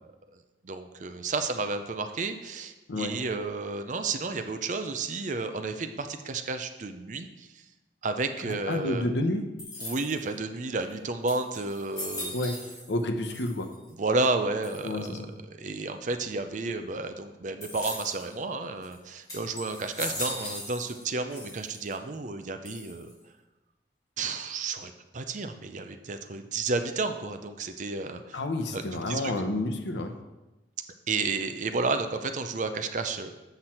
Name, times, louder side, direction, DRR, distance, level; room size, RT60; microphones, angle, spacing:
voice 1, 0.3-7.6 8.0-9.1 9.8-12.3 14.0-23.1 24.2-28.4 28.7-29.3 31.1-33.3, right 3 dB, 45° right, 8 dB, 0.5 m, -32 dB
voice 2, 8.4-9.5 12.3-12.6 12.9-13.7 14.8-15.3 28.3-30.1, left 1 dB, 80° left, 6 dB, 0.8 m, -30 dB
sound 1, 9.6-10.3 10.9-11.0 11.3-13.0 13.3-13.9 14.6-15.1 17.6-18.3 18.8-18.9 19.3-21.0 21.3-21.9 22.6-23.2, left 1 dB, 20° left, 2.5 m, -39 dB
8.0 x 5.8 x 4.4 m, 1.1 s
head